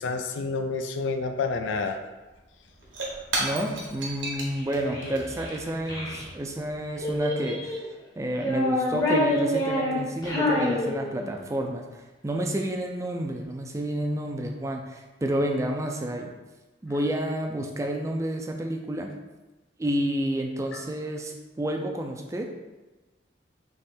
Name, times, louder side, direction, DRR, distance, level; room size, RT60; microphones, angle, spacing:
voice 1, 0.0-2.0 5.0-5.1 20.7-20.8, left 4 dB, 75° left, 6 dB, 0.3 m, -29 dB
Shatter / Crushing, 2.3-7.2, right 2 dB, 70° right, 1.1 m, -36 dB
voice 2, 3.4-7.8 8.2-16.3 16.8-19.1 19.8-22.5, right 1 dB, 15° right, 2 dB, 0.4 m, -30 dB
Child speech kid speaking, 4.6-6.2 7.0-7.9 8.3-11.5, left 1 dB, 20° left, 0.8 m, -27 dB
3.6 x 3.2 x 4.2 m, 1.1 s
head